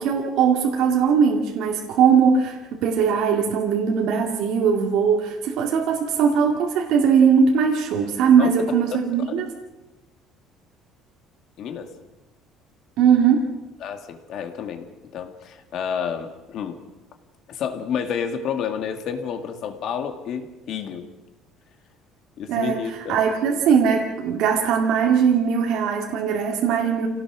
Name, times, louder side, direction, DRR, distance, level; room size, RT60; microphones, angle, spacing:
voice 1, 0.0-9.5 13.0-13.5 22.5-22.8 23.1-27.1, right 6 dB, 65° right, 1 dB, 2.3 m, -20 dB
voice 2, 8.4-8.7 11.6-11.9 13.8-16.8 17.5-21.1 22.4-23.2, left 7 dB, 50° left, 6 dB, 2.1 m, -30 dB
27.0 x 18.0 x 6.2 m, 1.1 s
cardioid pair, 170°, 0 cm